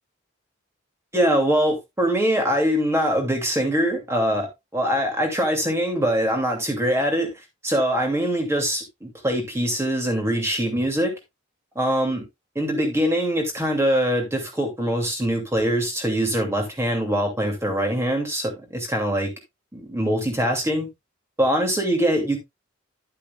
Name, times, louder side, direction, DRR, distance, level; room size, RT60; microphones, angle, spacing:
voice 1, 1.1-7.3 7.6-11.2 11.7-12.2 12.5-19.3 19.7-20.9 21.4-22.4, equal, 15° right, 2.6 m, -23 dB
11.0 x 8.2 x 2.4 m
head